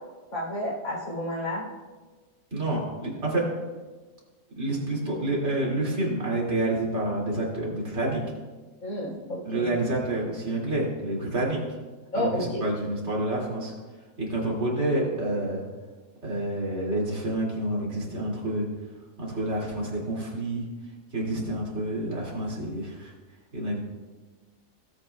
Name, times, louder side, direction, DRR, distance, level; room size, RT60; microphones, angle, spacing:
voice 1, 0.3-1.7 8.8-9.7 12.1-12.6, left 1 dB, 80° left, -3 dB, 3.7 m, -30 dB
voice 2, 2.5-3.5 4.6-8.2 9.5-11.8 12.2-13.7 14.2-15.6 16.2-18.6 19.2-20.7 21.1-23.1 23.5-23.8, right 1 dB, 50° right, -4 dB, 2.8 m, -28 dB
18.0 x 8.0 x 2.3 m, 1.3 s
omnidirectional pair, 1.5 m